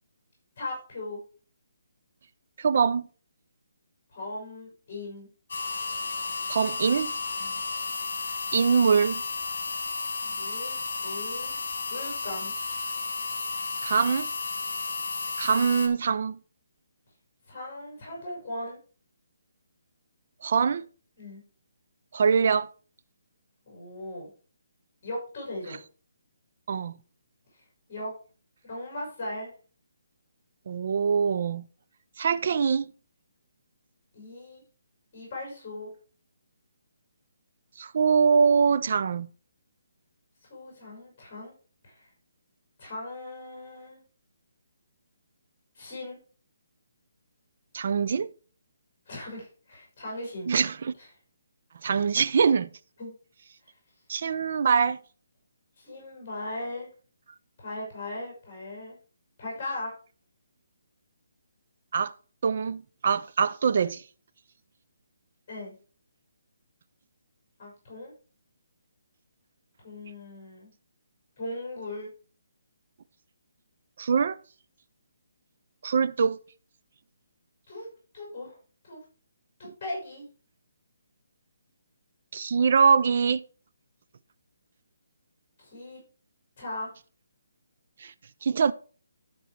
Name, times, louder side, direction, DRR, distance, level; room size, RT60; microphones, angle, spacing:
voice 1, 0.6-1.2 4.1-5.3 7.4-7.6 10.2-11.5 11.9-12.5 17.5-18.8 21.2-21.4 23.7-24.3 25.0-25.8 27.5-28.1 28.6-29.5 34.1-34.6 35.1-35.9 40.5-41.5 41.8-42.1 42.8-44.0 45.7-46.2 49.1-50.5 51.0-51.1 53.0-53.1 55.8-56.9 57.6-59.0 59.4-59.9 65.5-65.7 67.6-68.1 69.8-70.7 71.4-72.1 77.7-77.9 78.1-78.6 78.8-79.0 79.8-80.3 85.6-86.0 86.6-86.9, left 1 dB, 30° left, 5.8 m, -38 dB
voice 2, 2.6-3.1 6.5-7.1 8.5-9.2 13.8-14.3 15.4-16.4 20.4-20.9 22.1-22.7 26.7-27.0 30.7-31.7 32.2-32.9 37.8-39.3 47.7-48.3 50.5-50.9 51.8-52.7 54.1-55.0 61.9-62.1 62.4-64.0 74.0-74.4 75.8-76.4 82.3-83.4 88.0-88.1 88.4-88.7, right 6 dB, 50° right, 0.5 m, -23 dB
sound 1, 5.5-15.9, left 4 dB, 55° left, 2.1 m, -33 dB
12.0 x 4.6 x 4.8 m
hypercardioid pair, 170°, 0 cm